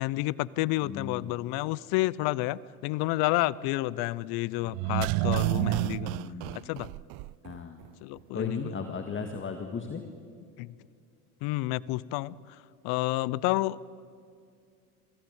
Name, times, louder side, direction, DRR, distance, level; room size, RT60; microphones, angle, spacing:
voice 1, 0.0-6.1 6.5-6.9 8.0-8.6 10.6-10.7 11.4-12.4 12.8-13.8, left 18 dB, 60° left, 22 dB, 0.7 m, -30 dB
voice 2, 0.8-1.3 5.9-6.8 7.4-7.8 8.3-10.0, left 5 dB, 25° left, 6 dB, 1.8 m, -36 dB
sound 1, 4.7-7.6 7.8-7.9, right 21 dB, 55° right, 0.5 m, -29 dB
23.5 x 16.0 x 9.6 m, 2.3 s
hypercardioid pair, 85°, 44 cm